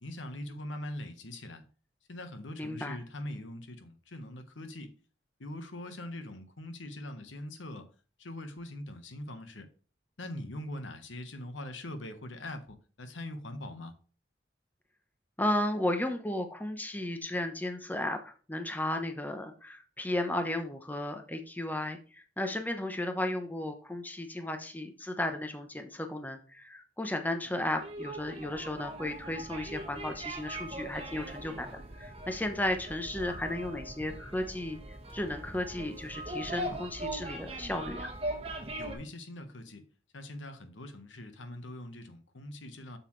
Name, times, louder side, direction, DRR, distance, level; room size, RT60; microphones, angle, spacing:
voice 1, 0.0-1.6 2.1-4.9 5.4-7.9 8.2-9.7 10.2-13.9 38.8-39.9 40.1-43.0, left 1 dB, 90° left, 1.2 m, -42 dB
voice 2, 2.6-3.0 15.4-34.8 35.1-38.1, left 1 dB, 10° left, 0.7 m, -34 dB
sound 1, 27.6-38.9, right 1 dB, 30° right, 1.4 m, -41 dB
7.2 x 6.9 x 3.2 m
head